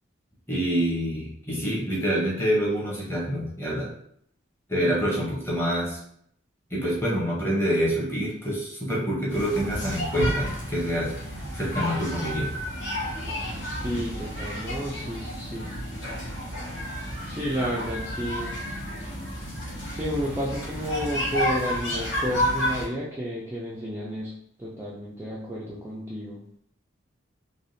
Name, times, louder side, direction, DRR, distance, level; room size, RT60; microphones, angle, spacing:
voice 1, 0.5-3.9 4.7-6.0 6.7-11.1 11.5-12.5, equal, 10° left, -5 dB, 0.8 m, -26 dB
sound 1, 9.3-22.9, equal, 60° left, 1.0 m, -31 dB
voice 2, 13.8-15.7 17.2-18.6 19.9-24.3 24.6-26.4, equal, 10° right, -6 dB, 0.3 m, -31 dB
3.3 x 2.2 x 2.6 m, 0.68 s
head